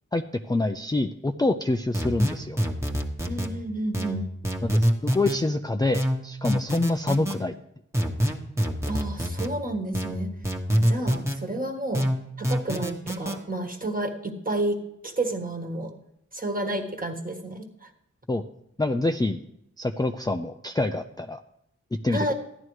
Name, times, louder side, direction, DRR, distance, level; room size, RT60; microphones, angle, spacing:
voice 1, 0.1-2.6 4.6-7.5 18.3-18.4 18.8-19.4 19.8-21.4 22.0-22.3, left 2 dB, 15° left, 5 dB, 0.4 m, -26 dB
sound 1, 1.9-3.5 3.9-5.4 5.9-7.4 7.9-9.5 9.9-11.4 11.9-13.4, equal, 10° right, 1.2 m, -25 dB
voice 2, 3.2-4.3 8.9-10.3 10.7-12.1 12.4-15.9 16.3-17.9 22.1-22.3, right 1 dB, 30° right, 3 dB, 1.5 m, -30 dB
14.5 x 11.0 x 3.2 m, 0.80 s
wide cardioid pair, 50°, 29 cm